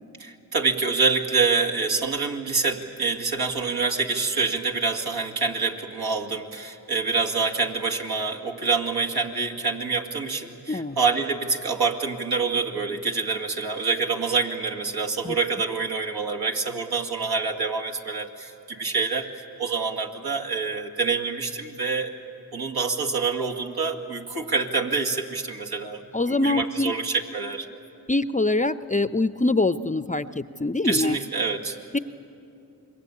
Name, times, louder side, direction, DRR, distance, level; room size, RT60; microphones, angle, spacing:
voice 1, 0.2-22.1 22.5-26.0 26.3-27.7 30.8-31.8, right 4 dB, 65° right, 2 dB, 2.3 m, -26 dB
voice 2, 26.1-26.9 28.1-31.2 31.9-32.0, left 2 dB, 20° left, 13 dB, 0.7 m, -24 dB
27.0 x 22.0 x 8.6 m, 2.7 s
supercardioid pair, 45°, 40 cm